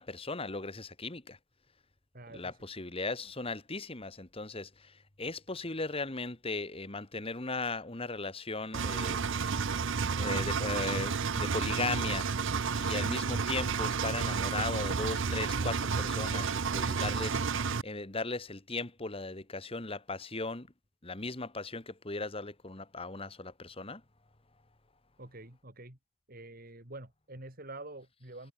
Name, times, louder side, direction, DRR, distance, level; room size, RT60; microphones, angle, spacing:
voice 1, 0.0-1.4 2.3-9.7 10.2-12.3 12.7-20.7 21.0-24.0, left 3 dB, 30° left, 1.8 m, -37 dB
voice 2, 2.1-2.6 25.2-26.0 26.3-28.5, right 2 dB, 45° right, 3.9 m, -47 dB
Engine, 8.7-17.8, right 5 dB, 65° right, 0.7 m, -31 dB
head